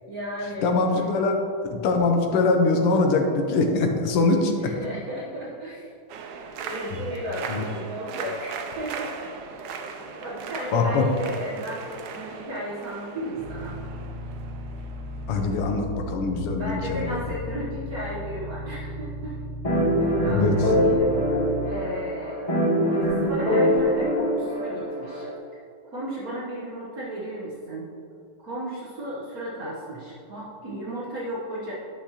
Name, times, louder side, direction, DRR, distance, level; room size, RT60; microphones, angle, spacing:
voice 1, 0.1-0.7 4.3-5.9 6.6-9.3 10.2-13.8 16.6-19.4 20.0-21.1 21.6-22.4 22.9-25.6 25.9-27.9 28.4-31.7, right 1 dB, 50° right, -6 dB, 1.2 m, -34 dB
voice 2, 0.6-1.3 1.7-4.5 7.5-7.6 10.7-11.0 15.3-17.2 20.3-20.6, left 3 dB, 90° left, 3 dB, 1.7 m, -22 dB
sound 1, 6.1-15.8, right 5 dB, 85° right, 0.8 m, -38 dB
sound 2, 13.4-21.7, equal, 70° right, 1.8 m, -35 dB
sound 3, 19.6-25.3, equal, 45° left, 0.4 m, -23 dB
9.7 x 6.0 x 2.8 m, 2.4 s
omnidirectional pair, 2.4 m